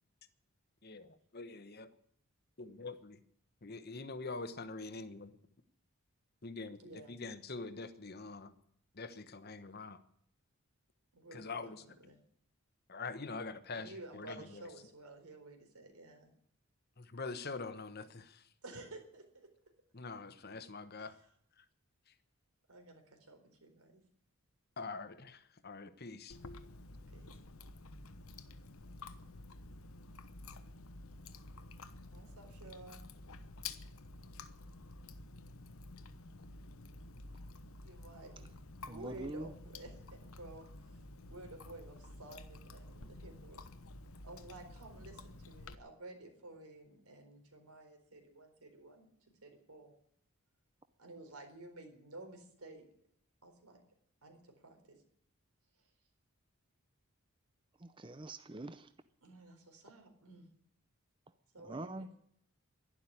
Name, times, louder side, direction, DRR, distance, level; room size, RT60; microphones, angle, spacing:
voice 1, 0.8-1.9 2.6-3.2 3.6-5.4 6.4-8.5 8.9-10.0 11.3-11.8 12.9-14.7 17.0-18.5 19.9-21.2 21.6-21.7 22.1-22.2 24.8-26.4, left 3 dB, 45° left, 12 dB, 1.0 m, -45 dB
voice 2, 6.8-7.2 11.1-12.2 13.7-16.3 18.6-19.5 21.0-21.1 22.7-24.0 27.1-27.3 32.1-33.1 37.8-41.0 41.3-43.6 44.2-49.1 49.4-49.9 51.0-52.9 53.4-53.8 54.2-55.0 55.8-55.9 59.2-60.5 61.5-62.1, right 2 dB, 90° right, 4 dB, 4.2 m, -53 dB
Chewing mastication, 26.3-45.7, left 3 dB, 75° left, 1.0 m, -51 dB
voice 3, 38.9-39.5 57.8-58.9 61.6-62.1, right 2 dB, 20° right, 11 dB, 0.5 m, -44 dB
11.5 x 11.5 x 9.9 m, 0.68 s
head